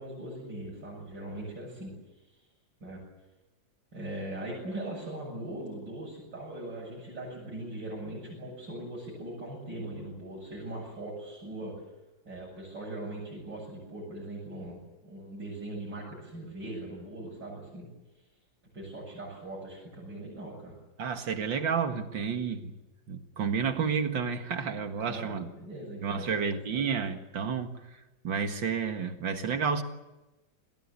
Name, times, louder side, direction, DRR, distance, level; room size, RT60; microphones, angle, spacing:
voice 1, 0.0-2.4 2.8-3.0 3.9-11.7 12.2-17.9 18.7-20.8 24.9-26.9, right 1 dB, 70° right, -3 dB, 8.1 m, -40 dB
voice 2, 21.0-22.7 23.1-25.5 26.0-27.8 28.2-29.8, right 6 dB, 90° right, 6 dB, 2.5 m, -30 dB
29.0 x 19.0 x 8.5 m, 1.1 s
omnidirectional pair, 2.0 m